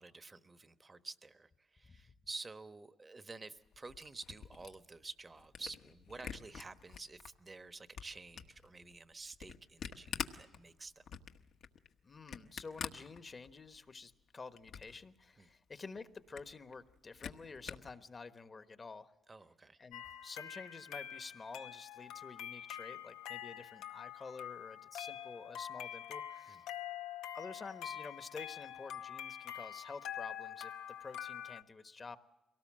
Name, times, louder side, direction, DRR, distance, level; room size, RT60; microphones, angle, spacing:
voice 1, 0.0-11.1 15.4-15.5 19.3-19.8 26.5-26.6, right 3 dB, 30° right, 12 dB, 1.1 m, -50 dB
Camera, 3.6-7.3 7.7-13.8 14.1-15.0 15.4-15.5 15.7-15.8 16.1-17.9, left 7 dB, 70° left, 1.2 m, -46 dB
voice 2, 12.0-19.1 19.8-26.6 27.3-30.7 31.0-32.2, left 4 dB, 35° left, 11 dB, 1.2 m, -50 dB
sound 1, 19.9-31.6, left 10 dB, 90° left, 0.8 m, -46 dB
23.0 x 18.5 x 7.5 m, 1.0 s
cardioid pair, 75°, 0 cm